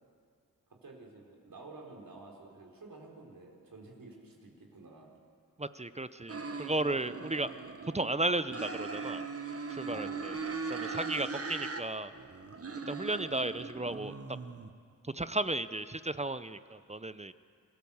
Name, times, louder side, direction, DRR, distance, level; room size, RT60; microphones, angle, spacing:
voice 1, 0.7-5.1 9.9-10.5, right 3 dB, 65° right, 0 dB, 4.5 m, -51 dB
voice 2, 5.6-7.5 7.8-9.2 9.7-10.4 10.7-12.1 12.9-14.1 15.0-17.3, right 2 dB, 20° right, 13 dB, 0.7 m, -34 dB
sound 1, 6.3-8.1 8.5-11.8 12.1-14.7, right 4 dB, 40° right, 1.6 m, -39 dB
26.0 x 15.5 x 7.2 m, 2.2 s
cardioid pair, 45°, 36 cm